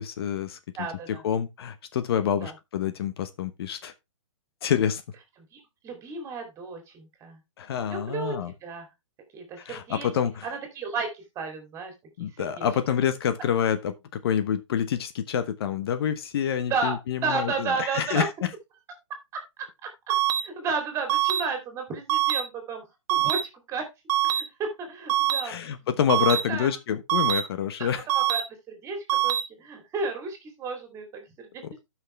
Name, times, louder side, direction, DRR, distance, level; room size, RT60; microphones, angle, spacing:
voice 1, 0.0-0.6 1.1-3.9 4.6-5.0 7.6-8.5 9.6-10.5 12.2-18.5 25.4-28.1, left 8 dB, 50° left, 1.0 m, -27 dB
voice 2, 0.8-1.2 2.4-2.5 5.5-7.4 7.9-8.9 9.3-10.1 10.4-11.9 12.2-12.7 16.7-16.9 17.2-18.3 19.3-19.4 20.4-22.8 23.1-23.4 23.7-23.9 24.2-26.7 27.8-27.9 28.1-31.6, right 4 dB, 20° right, 2.7 m, -33 dB
sound 1, 20.1-20.4 21.1-21.4 22.1-22.4 23.1-23.4 24.1-24.4 25.1-25.4 26.1-26.4 27.1-27.4 28.1-28.4 29.1-29.4, right 12 dB, 35° right, 1.1 m, -23 dB
12.5 x 6.0 x 3.2 m
hypercardioid pair, 150°, 17 cm